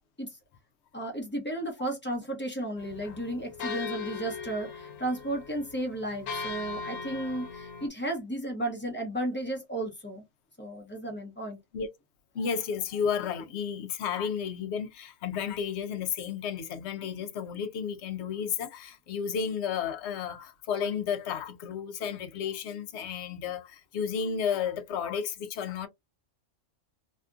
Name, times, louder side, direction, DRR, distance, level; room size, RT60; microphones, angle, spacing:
voice 1, 0.9-10.2 10.6-11.6, right 1 dB, 10° left, 0.7 m, -34 dB
sound 1, 2.8-7.9, left 5 dB, 90° left, 1.1 m, -39 dB
voice 2, 12.3-25.9, left 7 dB, 65° left, 0.8 m, -32 dB
2.8 x 2.4 x 2.4 m
omnidirectional pair, 1.3 m